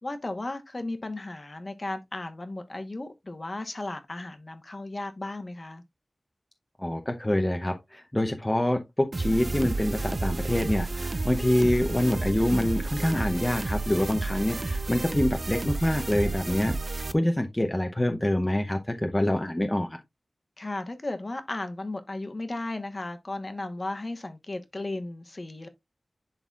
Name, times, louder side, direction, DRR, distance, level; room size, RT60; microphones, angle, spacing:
voice 1, 0.0-5.8 20.6-25.7, left 2 dB, 35° left, 1.1 m, -35 dB
voice 2, 6.8-20.0, left 1 dB, 15° left, 0.7 m, -26 dB
sound 1, 9.1-17.1, right 3 dB, 45° right, 0.5 m, -31 dB
11.0 x 4.0 x 2.4 m
wide cardioid pair, 100°, 0 cm